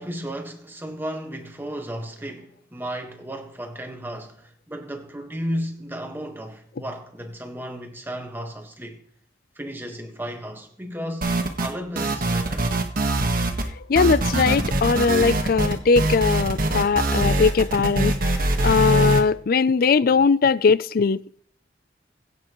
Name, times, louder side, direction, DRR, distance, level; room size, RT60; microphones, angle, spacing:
voice 1, 0.0-9.0 9.5-12.7, equal, 10° right, 1.5 m, -34 dB
sound 1, 11.2-11.7 12.0-13.7 14.0-19.2, right 1 dB, 55° right, 1.4 m, -23 dB
voice 2, 13.9-21.4, left 5 dB, 55° left, 0.4 m, -20 dB
21.0 x 8.7 x 3.1 m
head